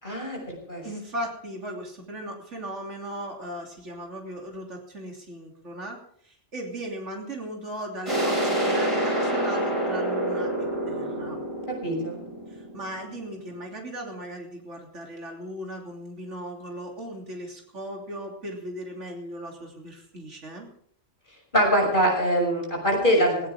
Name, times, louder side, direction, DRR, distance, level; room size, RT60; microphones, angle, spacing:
voice 1, 0.0-0.9 11.7-12.2 21.5-23.5, equal, 40° left, 0 dB, 6.6 m, -23 dB
voice 2, 0.8-6.0 6.2-11.4 12.5-20.7, right 1 dB, 70° right, 0 dB, 3.4 m, -37 dB
sound 1, 8.1-13.5, right 1 dB, 25° right, 5.4 m, -27 dB
18.5 x 17.0 x 3.6 m, 0.64 s
omnidirectional pair, 1.3 m